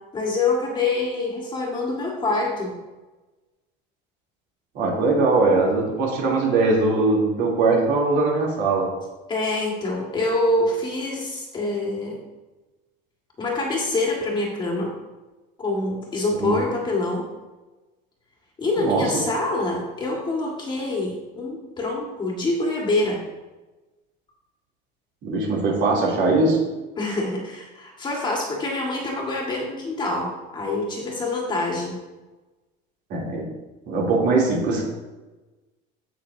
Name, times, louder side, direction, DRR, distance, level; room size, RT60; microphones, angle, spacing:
voice 1, 0.1-2.8 9.3-12.2 13.4-14.9 15.6-17.3 18.6-23.2 27.0-32.0, left 2 dB, 20° left, -2 dB, 1.9 m, -25 dB
voice 2, 4.7-8.9 16.4-16.6 18.8-19.2 25.2-26.6 33.1-33.5 33.9-34.9, right 3 dB, 60° right, -3 dB, 3.2 m, -21 dB
16.0 x 6.1 x 2.8 m, 1.1 s
cardioid pair, 165°, 21 cm